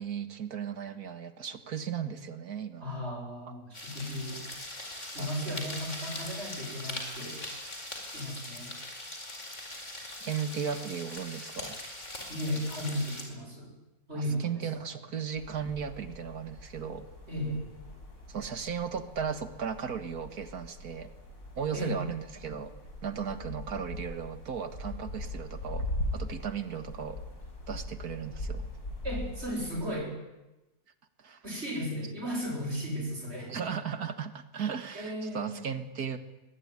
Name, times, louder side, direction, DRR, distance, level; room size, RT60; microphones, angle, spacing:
voice 1, 0.0-3.0 5.2-5.3 10.2-11.8 14.1-17.1 18.3-21.1 21.6-22.7 23.0-25.9 26.1-27.2 27.7-28.7 31.2-31.4 33.5-36.2, right 7 dB, 75° right, 10 dB, 2.3 m, -36 dB
voice 2, 2.8-4.4 5.0-7.4 8.0-8.7 12.3-13.7 14.1-14.9 17.3-17.6 21.7-21.9 29.0-30.1 31.4-33.5 34.9-35.6, equal, 40° right, 1 dB, 7.8 m, -35 dB
sound 1, 3.7-13.2, left 1 dB, 50° left, 5.1 m, -41 dB
sound 2, 15.4-29.9, left 1 dB, 85° left, 6.7 m, -41 dB
23.5 x 19.5 x 9.8 m, 1.0 s
omnidirectional pair, 1.6 m